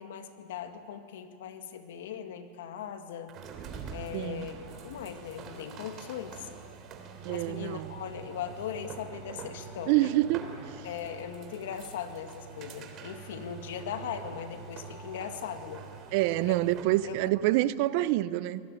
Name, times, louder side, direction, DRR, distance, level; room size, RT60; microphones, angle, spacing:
voice 1, 0.0-3.3 3.9-6.5 7.3-10.2 10.8-15.8 16.4-16.6 17.0-17.3, left 8 dB, 80° left, 1.9 m, -39 dB
sound 1, 3.3-17.0, right 6 dB, 40° right, 3.4 m, -45 dB
voice 2, 4.1-4.5 7.2-7.9 9.9-10.8 16.1-18.6, right 16 dB, 60° right, 0.7 m, -27 dB
24.0 x 19.0 x 9.1 m
supercardioid pair, 120°, 0 cm